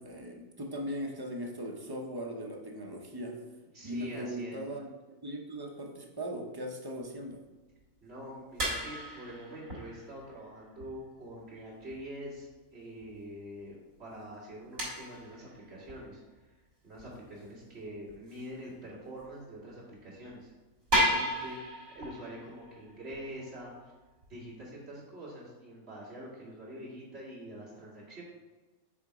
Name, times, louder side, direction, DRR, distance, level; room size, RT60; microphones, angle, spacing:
voice 1, 0.0-3.4 3.8-4.9 5.2-7.4, equal, 30° right, 1 dB, 0.5 m, -39 dB
voice 2, 3.7-4.6 8.0-16.2 16.8-20.5 20.9-23.9 24.3-28.2, equal, 50° right, -7 dB, 2.5 m, -45 dB
sound 1, 7.8-7.9 8.6-10.9 11.4-11.5 11.9-12.0 12.5-12.6 13.0-13.1 14.1-14.2 14.8-16.1 17.0-17.1 17.5-17.6 18.1-18.4 19.2-19.4 19.7-19.8 20.3-20.4 20.9-24.3, equal, 70° right, 2.4 m, -34 dB
6.1 x 3.9 x 4.7 m, 1.2 s
omnidirectional pair, 1.4 m